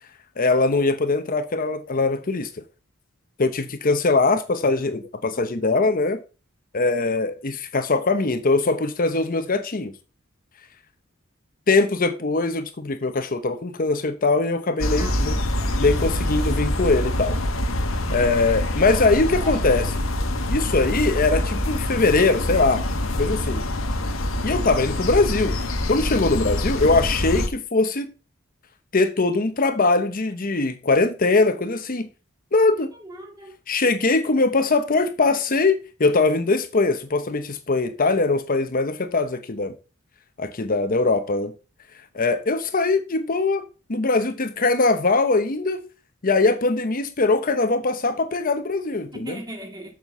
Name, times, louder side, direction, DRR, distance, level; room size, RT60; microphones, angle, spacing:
voice 1, 0.4-2.5 3.4-6.2 6.7-9.9 11.7-15.4 15.7-17.4 18.1-19.9 20.5-22.8 23.2-23.6 24.4-25.6 25.9-28.1 28.9-32.1 32.5-32.9 33.7-39.7 40.4-41.5 42.1-43.6 43.9-45.8 46.2-49.4, left 3 dB, 45° left, 0.9 m, -21 dB
sound 1, 14.8-27.5, left 1 dB, 85° left, 1.4 m, -25 dB
voice 2, 15.0-16.8 18.9-19.1 19.4-19.7 33.0-33.6 49.1-49.9, right 1 dB, 20° right, 2.2 m, -40 dB
7.3 x 5.9 x 6.7 m
head